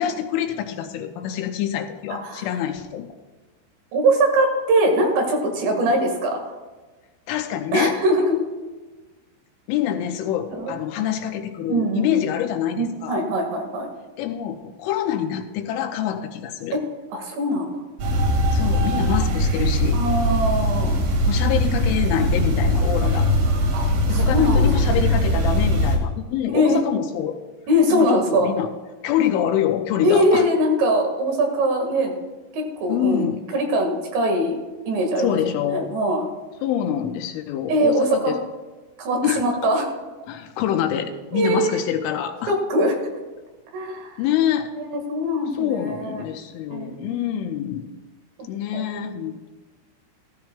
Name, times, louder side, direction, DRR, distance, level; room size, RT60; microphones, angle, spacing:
voice 1, 0.0-3.1 7.3-8.0 9.7-13.2 14.2-16.8 18.5-20.0 21.3-23.3 24.1-27.4 27.9-28.7 29.0-30.5 32.9-33.4 35.2-35.9 36.6-38.4 39.2-39.4 40.3-42.6 44.2-44.7 45.5-47.9 48.5-49.5, left 10 dB, 85° left, 5 dB, 3.2 m, -25 dB
voice 2, 2.1-2.5 3.9-6.5 7.7-8.4 10.5-10.7 11.7-12.2 12.8-13.9 16.7-16.8 17.1-17.7 19.9-21.0 23.0-23.2 23.7-23.8 24.1-24.9 26.5-26.8 27.7-28.5 30.0-32.1 32.5-33.2 33.5-34.6 34.9-35.4 35.7-36.3 37.7-38.3 39.0-39.9 41.3-41.8 42.5-43.0 43.7-44.2 44.8-46.2 46.7-47.3 48.7-48.8, equal, 70° right, 2 dB, 3.8 m, -22 dB
sound 1, 18.0-26.0, equal, 90° right, 4.7 m, -20 dB
15.0 x 14.5 x 2.3 m, 1.2 s
omnidirectional pair, 5.7 m